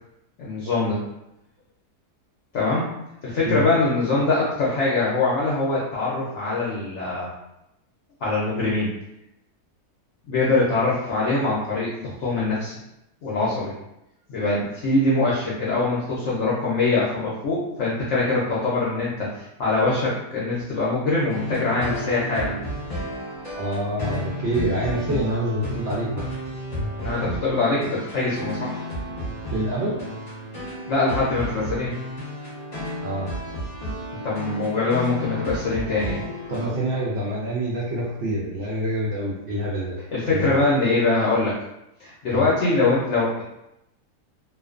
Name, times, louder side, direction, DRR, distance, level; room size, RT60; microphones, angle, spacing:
voice 1, 0.4-1.0 2.5-2.9 3.2-7.3 8.2-8.9 10.3-12.7 13.2-13.7 14.3-22.6 27.0-28.8 30.9-31.9 34.2-36.2 40.1-41.5 42.0-43.4, left 3 dB, 65° left, -6 dB, 0.7 m, -23 dB
sound 1, 21.3-36.7, left 1 dB, 30° left, 0.8 m, -32 dB
voice 2, 23.5-26.2 29.5-29.9 33.0-33.3 36.5-40.0 40.3-40.6 42.3-42.5, right 1 dB, 70° right, -6 dB, 0.6 m, -26 dB
2.4 x 2.3 x 2.3 m, 0.85 s
omnidirectional pair, 1.7 m